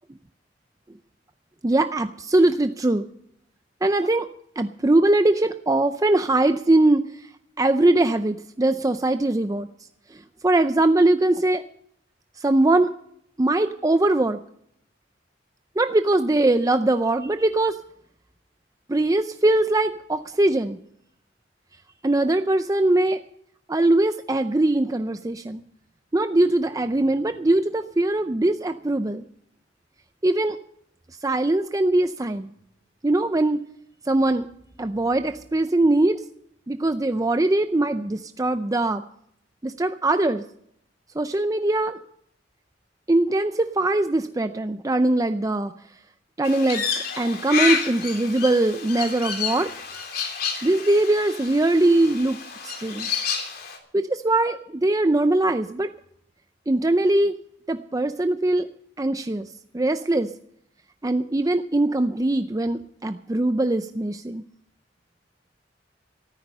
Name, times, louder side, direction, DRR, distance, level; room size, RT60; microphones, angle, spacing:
voice 1, 1.6-3.0 3.8-4.3 4.6-7.0 7.6-9.7 10.1-11.6 12.4-12.9 13.4-14.4 15.8-17.8 18.9-20.8 22.0-23.2 23.7-25.6 26.1-29.2 30.2-30.6 31.2-32.5 33.0-33.6 34.1-34.5 34.8-36.2 36.7-39.0 39.6-40.4 41.2-42.0 43.1-45.7 46.4-49.7 50.6-52.4 52.6-53.1 53.9-55.9 56.7-57.3 57.7-58.7 59.0-59.5 59.7-60.3 61.0-64.4, right 2 dB, 20° right, 9 dB, 0.5 m, -21 dB
Crow, 46.4-53.8, left 6 dB, 55° left, 3.2 m, -30 dB
14.0 x 14.0 x 5.5 m, 0.69 s
head